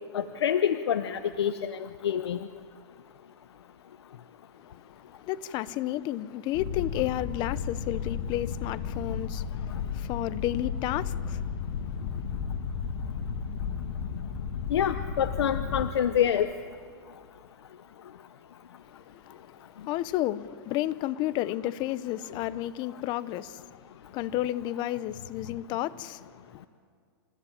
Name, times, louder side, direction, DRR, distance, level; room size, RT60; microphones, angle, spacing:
voice 1, 0.1-2.5 14.7-16.5, left 9 dB, 90° left, 0.8 m, -27 dB
voice 2, 5.3-11.4 12.0-12.2 19.1-19.2 19.9-23.6 24.1-26.2 26.5-26.6, left 14 dB, 35° left, 0.8 m, -32 dB
sound 1, 6.5-15.9, left 6 dB, 65° left, 2.0 m, -33 dB
28.0 x 14.0 x 9.9 m
hypercardioid pair, 140°, 13 cm